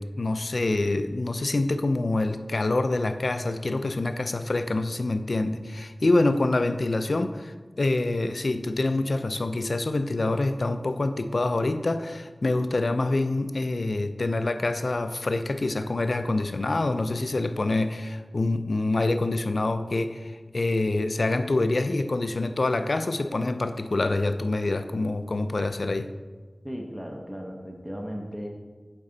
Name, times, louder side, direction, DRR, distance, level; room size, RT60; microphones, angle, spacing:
voice 1, 0.0-26.1, left 2 dB, 70° left, 9 dB, 0.4 m, -26 dB
voice 2, 26.6-28.5, equal, 10° right, 1 dB, 0.7 m, -36 dB
7.2 x 4.4 x 3.8 m, 1.4 s
wide cardioid pair, 65°, 0 cm